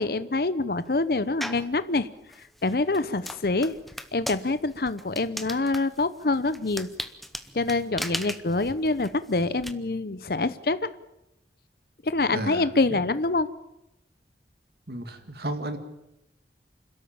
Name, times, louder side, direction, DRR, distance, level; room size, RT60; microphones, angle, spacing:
voice 1, 0.0-2.1 2.6-3.7 4.1-6.9 7.5-10.8 12.0-13.5, left 3 dB, 55° left, 14 dB, 0.8 m, -26 dB
sound 1, 1.4-1.7 2.3-9.7, equal, ahead, 0.8 m, -37 dB
voice 2, 12.3-13.0 14.9-15.8, right 1 dB, 65° right, 8 dB, 2.1 m, -33 dB
28.0 x 13.0 x 8.7 m, 0.89 s
head